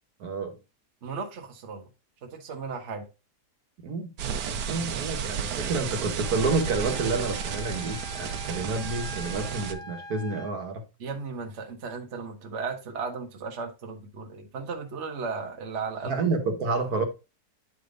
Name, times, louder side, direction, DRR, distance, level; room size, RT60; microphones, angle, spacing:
voice 1, 0.2-0.6 3.8-4.1 4.5-10.8 16.0-17.0, right 3 dB, 65° right, 1.6 m, -29 dB
voice 2, 1.0-1.8 2.2-3.1 11.0-16.2, right 5 dB, 50° right, 1.3 m, -35 dB
sound 1, 4.2-9.7, right 7 dB, 90° right, 1.4 m, -32 dB
Wind instrument woodwind instrument, 6.2-10.5, left 1 dB, 5° left, 0.6 m, -43 dB
9.7 x 3.4 x 3.8 m
omnidirectional pair, 1.7 m